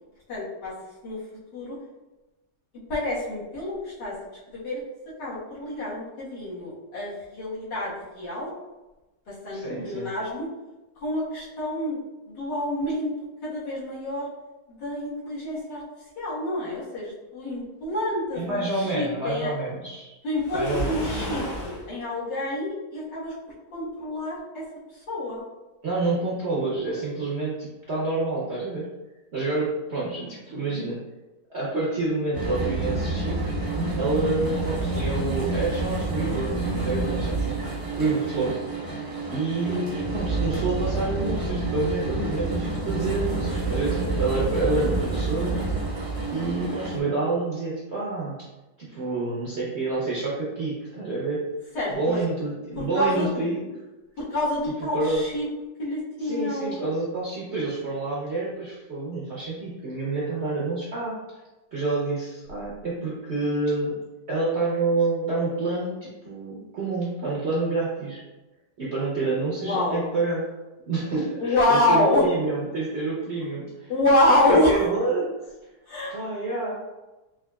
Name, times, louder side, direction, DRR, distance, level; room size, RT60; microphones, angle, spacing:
voice 1, 0.3-0.7 1.0-1.2 1.5-1.8 2.9-4.2 4.5-4.8 5.2-8.5 9.3-10.5 11.0-12.0 12.3-13.1 13.4-14.3 14.7-15.8 16.2-19.5 20.2-23.4 23.7-24.7 24.9-25.4 39.6-39.9 51.7-52.2 52.8-53.3 54.2-55.5 55.8-56.8 69.6-70.1 71.4-72.2 73.9-74.9 75.9-76.2, left 1 dB, 75° left, -9 dB, 2.0 m, -27 dB
voice 2, 9.5-10.1 18.3-20.2 20.5-21.3 25.8-28.9 29.3-31.0 31.5-33.4 34.0-37.6 38.0-38.9 39.3-45.6 46.3-48.3 48.8-51.4 52.0-53.6 54.9-55.2 56.2-61.2 61.7-63.9 64.3-68.2 68.8-70.4 70.9-73.9 74.3-75.3 76.1-76.8, right 3 dB, 60° right, -6 dB, 0.7 m, -28 dB
Waves surf, 20.4-21.9, equal, 55° left, 1.7 m, -32 dB
sound 1, 32.3-47.0, right 3 dB, 20° right, 0.6 m, -28 dB
4.7 x 2.6 x 2.3 m, 1.1 s
omnidirectional pair, 1.9 m